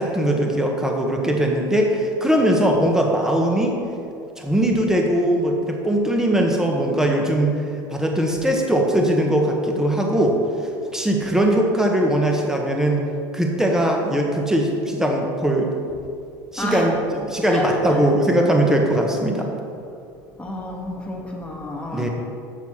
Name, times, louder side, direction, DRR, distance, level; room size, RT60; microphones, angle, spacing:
voice 1, 0.0-3.8 4.4-7.6 7.9-10.4 10.9-13.1 13.3-15.7 16.5-17.0 17.3-19.5 21.9-22.1, right 1 dB, 5° right, 1 dB, 1.4 m, -20 dB
voice 2, 16.6-16.9 17.5-18.0 20.4-22.1, left 2 dB, 10° left, -1 dB, 1.8 m, -29 dB
7.1 x 6.4 x 5.7 m, 2.5 s
hypercardioid pair, 90°, 11 cm